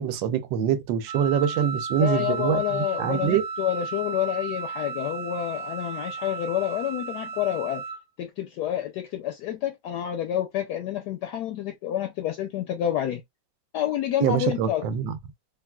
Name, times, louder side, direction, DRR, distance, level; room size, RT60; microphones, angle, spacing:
voice 1, 0.0-3.4 14.2-15.2, right 9 dB, 85° right, 1.3 m, -25 dB
Wind instrument woodwind instrument, 1.1-8.0, right 5 dB, 60° right, 0.9 m, -34 dB
voice 2, 2.0-7.8 8.2-13.2 13.7-14.8, left 11 dB, 75° left, 1.0 m, -28 dB
3.6 x 2.4 x 2.2 m
omnidirectional pair, 2.0 m